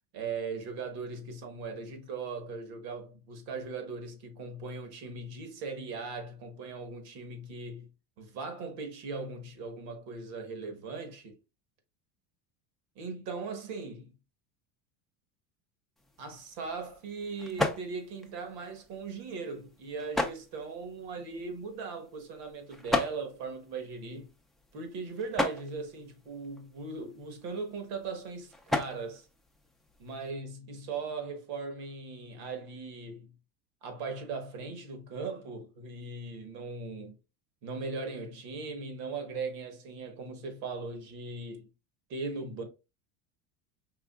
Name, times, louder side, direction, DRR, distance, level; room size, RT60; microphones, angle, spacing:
voice 1, 0.1-7.9 8.2-11.4 12.9-14.1 16.2-24.3 24.7-29.3 30.0-33.4 33.8-37.2 37.6-41.7 42.1-42.6, right 4 dB, 65° right, 1.5 m, -39 dB
sound 1, 16.0-30.3, left 1 dB, ahead, 0.4 m, -38 dB
4.9 x 3.5 x 2.3 m
supercardioid pair, 130°, 40 cm